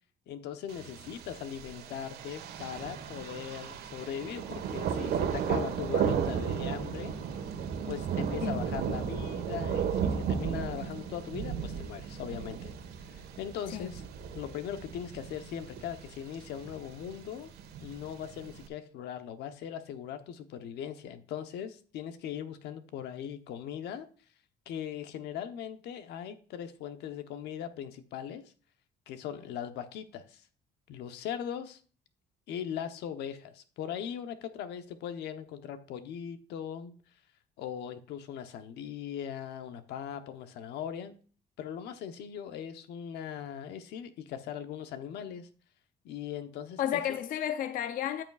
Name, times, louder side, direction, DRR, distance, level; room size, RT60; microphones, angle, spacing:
voice 1, 0.3-7.2 7.9-12.7 13.1-14.0 14.3-17.5 17.8-24.1 24.7-28.5 29.1-30.4 30.9-31.8 32.5-36.9 37.6-41.1 41.6-45.5 46.0-47.2, left 9 dB, 80° left, 1.0 m, -39 dB
Thunder, 0.7-18.7, right 7 dB, 75° right, 1.4 m, -35 dB
voice 2, 46.8-48.2, left 10 dB, 55° left, 0.5 m, -32 dB
14.0 x 6.0 x 2.4 m
cardioid pair, 110°, 17 cm